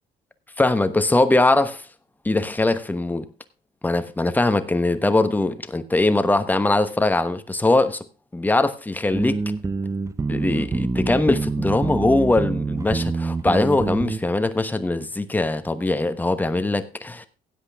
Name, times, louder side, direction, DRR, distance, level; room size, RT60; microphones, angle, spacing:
voice 1, 0.6-1.9 2.2-3.3 3.8-8.0 8.3-9.4 10.3-17.3, left 2 dB, 10° left, 1.1 m, -21 dB
sound 1, 9.1-14.2, right 3 dB, 20° right, 0.7 m, -26 dB
16.0 x 8.2 x 3.5 m
cardioid pair, 110°, 17 cm